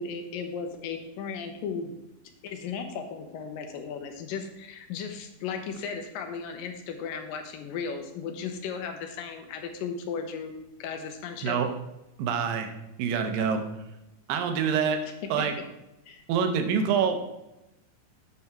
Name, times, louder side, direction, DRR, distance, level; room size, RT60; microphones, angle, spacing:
voice 1, 0.0-1.9 2.4-11.6 13.3-13.5 15.4-15.5 16.1-16.2, left 6 dB, 85° left, 5 dB, 2.6 m, -36 dB
voice 2, 12.2-12.7 13.0-13.6 14.3-15.0 15.3-15.5 16.3-17.2, right 6 dB, 85° right, 6 dB, 2.6 m, -26 dB
8.5 x 5.9 x 4.6 m, 0.92 s
omnidirectional pair, 3.9 m